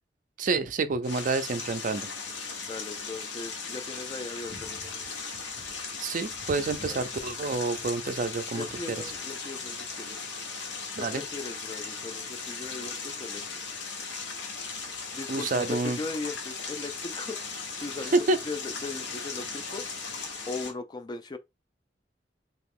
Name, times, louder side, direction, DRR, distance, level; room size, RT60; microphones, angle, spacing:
voice 1, 0.4-2.1 6.0-9.0 11.0-11.2 15.3-16.0 18.1-18.4, right 3 dB, 45° right, 0.4 m, -28 dB
sound 1, 1.0-20.7, left 4 dB, 85° left, 0.9 m, -37 dB
voice 2, 2.6-5.1 6.9-7.0 8.5-10.3 11.0-13.4 15.1-18.2 18.4-20.1 20.5-21.4, left 3 dB, 25° left, 0.3 m, -39 dB
2.8 x 2.4 x 3.5 m
head